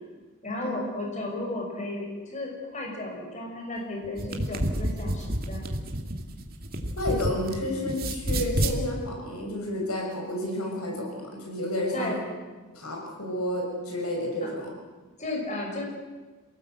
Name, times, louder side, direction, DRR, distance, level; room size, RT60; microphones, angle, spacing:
voice 1, 0.4-5.7 11.9-12.2 14.4-14.5 15.2-15.8, left 2 dB, 30° left, 0 dB, 6.1 m, -34 dB
sound 1, 4.0-7.6 7.9-8.8, right 1 dB, 40° right, 2.3 m, -29 dB
voice 2, 7.0-12.2 12.7-14.7, left 1 dB, 80° left, 1 dB, 6.3 m, -31 dB
28.0 x 18.0 x 8.0 m, 1.3 s
head